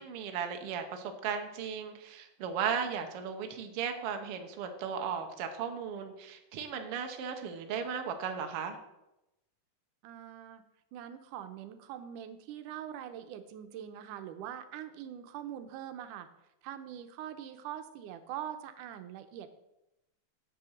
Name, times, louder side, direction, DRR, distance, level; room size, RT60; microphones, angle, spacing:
voice 1, 0.0-8.8, right 7 dB, 65° right, 6 dB, 1.6 m, -36 dB
voice 2, 10.0-10.6 10.9-16.3 16.6-19.5, right 10 dB, 85° right, 9 dB, 2.3 m, -43 dB
7.8 x 6.8 x 6.2 m, 0.90 s
omnidirectional pair, 3.6 m